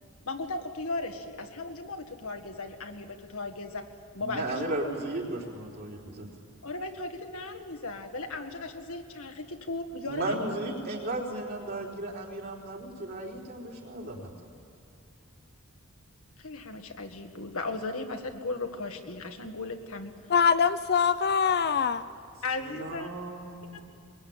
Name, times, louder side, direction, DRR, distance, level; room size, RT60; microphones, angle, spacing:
voice 1, 0.3-3.8 4.1-4.6 6.6-10.5 16.4-20.1 22.4-23.1, left 3 dB, 70° left, 4 dB, 1.8 m, -36 dB
voice 2, 4.2-6.3 10.1-14.3 22.6-23.8, right 2 dB, 50° right, -2 dB, 4.2 m, -35 dB
voice 3, 20.3-22.0, left 6 dB, 50° left, 12 dB, 0.6 m, -23 dB
21.5 x 21.5 x 8.9 m, 2.4 s
head